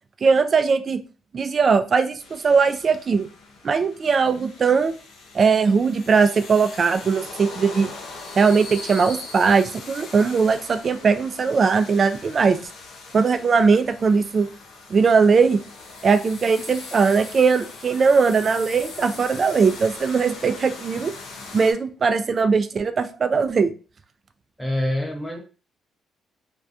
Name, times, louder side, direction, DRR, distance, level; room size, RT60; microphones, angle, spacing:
voice 1, 0.2-1.0 1.3-3.3 3.6-4.9 5.3-7.9 8.4-12.6 13.1-14.5 14.9-15.6 16.0-21.1 21.5-23.7, right 5 dB, 45° right, 9 dB, 0.3 m, -19 dB
sound 1, 2.2-21.7, left 3 dB, 80° left, 0.6 m, -40 dB
voice 2, 24.6-25.4, left 1 dB, 5° left, 2 dB, 0.7 m, -25 dB
2.3 x 2.2 x 2.5 m, 0.37 s
cardioid pair, 90°, 0 cm